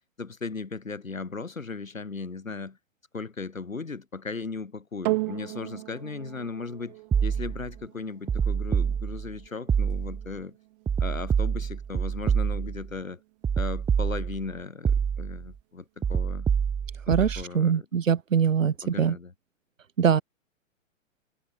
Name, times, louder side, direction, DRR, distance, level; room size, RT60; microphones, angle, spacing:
voice 1, 0.0-2.8 3.1-10.6 11.0-13.2 13.6-16.5 17.2-17.9 18.8-19.3, left 4 dB, 80° left, 6.7 m, -37 dB
sound 1, 5.1-13.6 14.3-14.4, right 23 dB, 35° right, 1.0 m, -38 dB
sound 2, 7.1-7.7 8.3-9.3 9.7-10.3 10.9-12.9 13.4-14.5 14.8-15.5 16.0-17.4, right 7 dB, 10° right, 1.5 m, -26 dB
voice 2, 17.1-19.1 20.0-20.2, right 7 dB, 70° right, 1.6 m, -23 dB
figure-of-eight pair, 110°, 40 cm